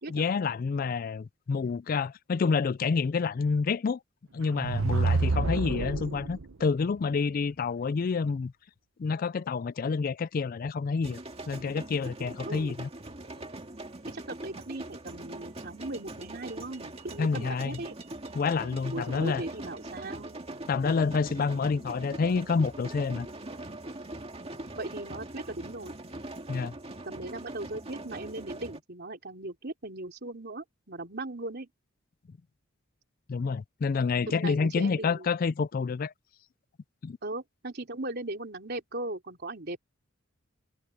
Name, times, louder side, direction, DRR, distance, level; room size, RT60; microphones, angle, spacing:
voice 1, 0.1-4.0 4.3-8.5 9.0-11.2 11.5-12.9 17.2-17.8 18.3-19.4 20.7-23.3 26.5-26.7 33.3-36.1 37.0-37.2, left 5 dB, 40° left, 0.3 m, -28 dB
sound 1, 4.4-6.4, right 3 dB, 75° right, 0.8 m, -28 dB
sound 2, 11.0-28.8, right 2 dB, 30° right, 2.0 m, -42 dB
voice 2, 14.1-17.9 18.9-20.4 24.8-26.0 27.0-31.7 34.3-35.3 37.2-39.8, right 2 dB, 50° right, 3.5 m, -38 dB
head